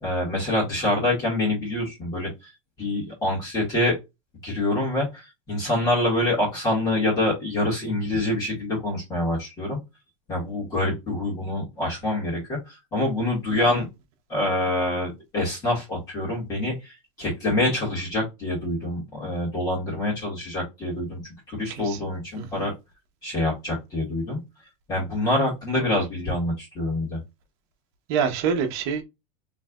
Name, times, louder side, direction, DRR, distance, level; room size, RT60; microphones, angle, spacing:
voice 1, 0.0-2.5 2.8-4.0 4.4-9.8 10.3-13.9 14.3-21.2 21.5-22.7 23.2-24.4 24.9-27.2, left 1 dB, 20° left, 2.0 m, -26 dB
voice 2, 21.7-22.0 22.4-22.6 28.1-29.0, right 6 dB, 45° right, 1.1 m, -26 dB
4.6 x 3.4 x 2.5 m
supercardioid pair, 175°, 17 cm